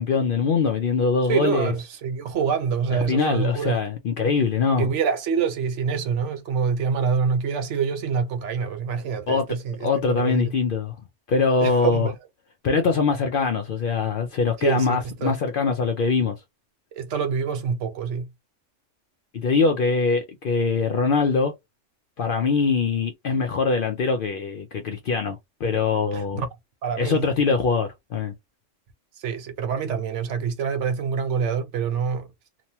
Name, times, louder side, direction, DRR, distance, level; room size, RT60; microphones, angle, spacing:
voice 1, 0.0-1.7 3.1-4.9 9.3-9.5 9.8-11.0 11.3-12.1 12.6-16.4 19.3-21.5 22.2-26.4 27.0-28.3, left 4 dB, 60° left, 0.6 m, -23 dB
voice 2, 1.3-3.8 4.8-10.5 11.6-12.1 14.6-15.4 16.9-18.3 26.1-26.5 26.8-27.3 29.2-32.3, right 6 dB, 75° right, 1.0 m, -26 dB
2.9 x 2.1 x 2.7 m
omnidirectional pair, 1.3 m